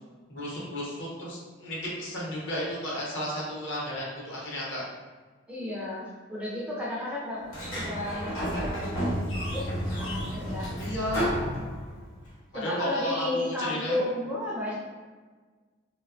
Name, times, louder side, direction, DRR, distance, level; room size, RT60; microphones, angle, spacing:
voice 1, 0.3-4.8 10.8-11.3 12.5-14.0, equal, 60° left, -5 dB, 0.7 m, -33 dB
voice 2, 5.5-9.6 9.9-10.7 12.5-14.7, left 1 dB, 5° right, -6 dB, 0.3 m, -33 dB
Sliding door, 7.5-12.2, equal, 85° left, 0.9 m, -31 dB
2.6 x 2.2 x 2.4 m, 1.4 s
head